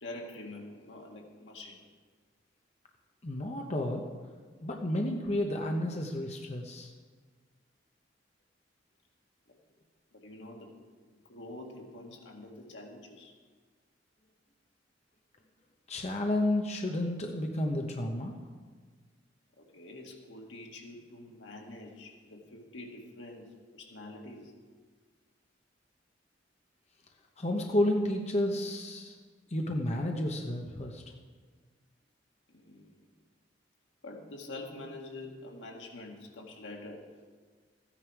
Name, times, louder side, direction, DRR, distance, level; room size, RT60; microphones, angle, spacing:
voice 1, 0.0-1.9 9.5-9.6 10.1-10.7 11.3-13.3 19.6-24.5 32.5-33.0 34.0-37.4, left 2 dB, 80° left, 1 dB, 1.9 m, -46 dB
voice 2, 3.2-4.0 4.6-6.9 15.9-18.3 27.4-29.1 29.5-31.0, left 1 dB, 35° left, 2 dB, 0.9 m, -31 dB
14.0 x 9.8 x 4.7 m, 1.5 s
head